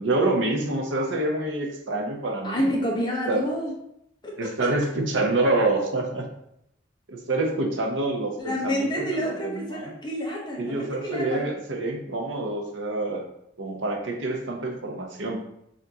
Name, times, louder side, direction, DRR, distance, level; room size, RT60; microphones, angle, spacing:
voice 1, 0.0-2.7 3.3-3.5 4.4-6.3 7.1-9.9 10.6-13.2 13.6-15.4, right 2 dB, 80° right, 2 dB, 0.8 m, -27 dB
voice 2, 2.4-3.7 4.2-4.5 8.4-11.5, equal, 25° left, -3 dB, 0.9 m, -28 dB
5.8 x 2.6 x 2.8 m, 0.77 s
head